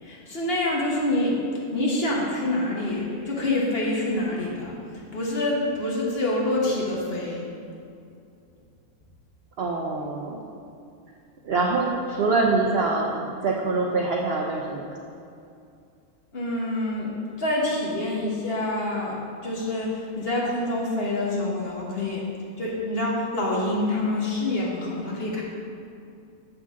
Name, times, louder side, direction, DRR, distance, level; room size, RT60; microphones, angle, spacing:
voice 1, 0.0-1.4 1.7-4.8 5.1-7.5 16.3-19.1 19.4-22.2 22.6-25.4, left 1 dB, 40° left, -4 dB, 1.3 m, -26 dB
voice 2, 9.6-10.4 11.4-14.8, right 3 dB, 60° right, -1 dB, 0.6 m, -24 dB
7.3 x 6.4 x 3.6 m, 2.5 s
omnidirectional pair, 1.6 m